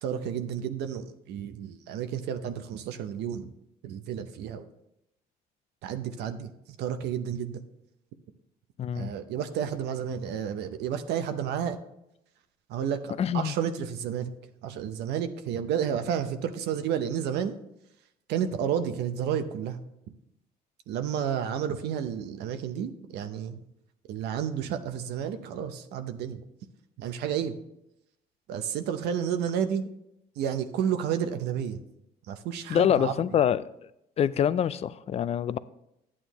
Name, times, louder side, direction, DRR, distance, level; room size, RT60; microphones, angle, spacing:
voice 1, 0.0-3.5 3.8-4.7 5.8-6.5 6.8-7.6 9.0-11.8 12.7-14.3 14.6-17.6 18.3-19.8 20.9-23.6 24.1-26.4 27.0-27.5 28.5-29.9 30.4-31.8 32.3-33.1, right 8 dB, 80° right, 0.7 m, -31 dB
voice 2, 8.8-9.1 13.2-13.5 32.7-33.7 34.2-35.6, left 9 dB, 40° left, 0.4 m, -25 dB
11.0 x 8.6 x 3.0 m
cardioid pair, 110°, 17 cm